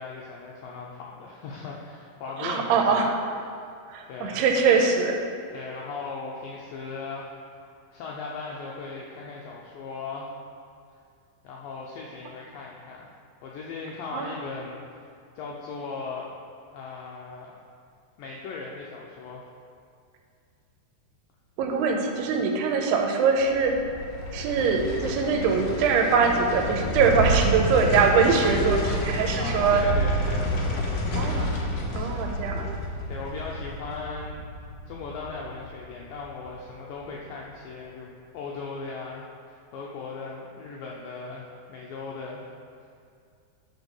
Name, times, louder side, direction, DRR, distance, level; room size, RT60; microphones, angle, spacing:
voice 1, 0.0-3.1 3.5-3.7 4.1-4.4 5.5-7.6 7.9-10.3 11.4-13.1 13.4-14.8 15.4-16.3 16.7-17.6 18.2-19.4 29.4-31.3 32.0-32.2 33.1-42.5, left 4 dB, 90° left, -3 dB, 2.0 m, -38 dB
voice 2, 2.3-3.1 3.9-5.2 14.1-14.4 21.6-23.8 24.3-29.9 31.1-31.5 31.9-32.7, right 5 dB, 85° right, 3 dB, 2.6 m, -23 dB
sound 1, 23.4-36.6 36.9-37.0, equal, 75° left, 1.6 m, -29 dB
10.5 x 4.3 x 6.5 m, 2.4 s
omnidirectional pair, 4.9 m